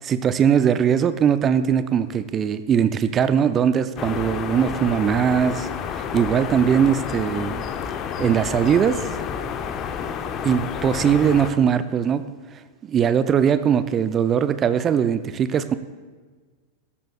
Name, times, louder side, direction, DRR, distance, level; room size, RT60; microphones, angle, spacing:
voice 1, 0.0-7.6 8.2-9.2 10.4-12.2 12.8-15.7, right 8 dB, 25° right, 13 dB, 0.5 m, -20 dB
sound 1, 4.0-11.5, left 7 dB, 30° left, 0.9 m, -30 dB
16.5 x 14.0 x 2.4 m, 1.5 s
figure-of-eight pair, 90°, 0 cm